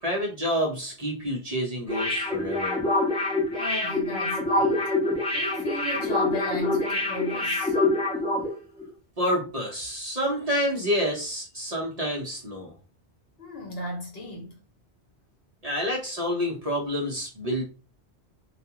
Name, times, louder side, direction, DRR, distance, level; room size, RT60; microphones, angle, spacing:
voice 1, 0.0-2.8 9.2-12.7 15.6-17.6, equal, 40° right, 0.7 m, -28 dB
sound 1, 1.9-8.5 8.8-8.9, left 2 dB, 5° left, 0.5 m, -25 dB
voice 2, 3.5-4.9 5.3-7.8 13.4-14.5, left 1 dB, 60° left, 1.0 m, -36 dB
2.3 x 2.3 x 2.8 m
omnidirectional pair, 1.2 m